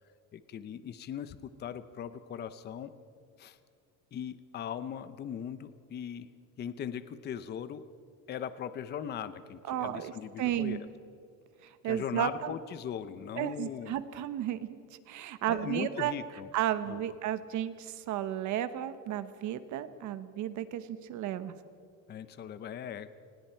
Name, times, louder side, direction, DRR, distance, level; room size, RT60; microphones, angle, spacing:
voice 1, 0.3-2.9 3.4-3.6 4.1-6.3 6.6-7.8 8.3-10.9 11.8-14.0 15.5-16.5 16.9-17.0 22.1-23.2, left 9 dB, 30° left, 13 dB, 0.6 m, -39 dB
voice 2, 9.7-10.1 10.4-10.8 11.8-12.5 13.4-14.8 15.1-16.1 16.5-21.5, right 11 dB, 60° right, 12 dB, 1.2 m, -33 dB
29.5 x 19.5 x 4.5 m, 2.4 s
cardioid pair, 180°, 34 cm